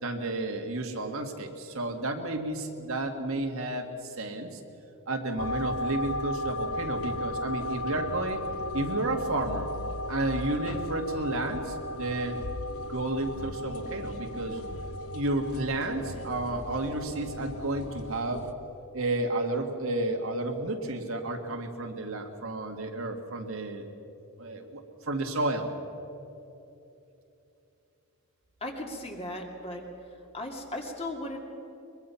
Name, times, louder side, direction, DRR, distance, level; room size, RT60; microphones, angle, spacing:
voice 1, 0.0-4.6 5.1-8.4 8.7-9.7 10.1-12.4 12.9-14.6 15.1-18.5 18.9-23.9 24.4-25.7, right 2 dB, 65° right, 4 dB, 1.9 m, -31 dB
sound 1, 5.4-18.5, left 1 dB, 70° left, 1.0 m, -35 dB
voice 2, 28.6-29.8 30.3-31.4, left 1 dB, 25° left, 1 dB, 2.3 m, -36 dB
23.0 x 22.5 x 5.7 m, 2.9 s
head